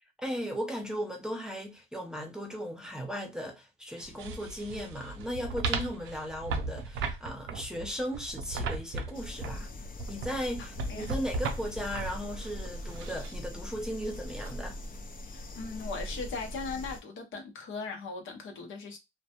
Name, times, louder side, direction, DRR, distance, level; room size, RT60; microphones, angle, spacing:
voice 1, 0.2-9.7 10.1-14.8, equal, 5° right, 0.7 m, -36 dB
sound 1, 4.0-13.3 14.3-14.5, right 3 dB, 85° right, 0.5 m, -37 dB
sound 2, 9.1-17.0, left 1 dB, 45° left, 0.5 m, -41 dB
voice 2, 15.3-19.0, left 4 dB, 75° left, 0.8 m, -39 dB
2.2 x 2.1 x 2.8 m
cardioid pair, 90°, 20 cm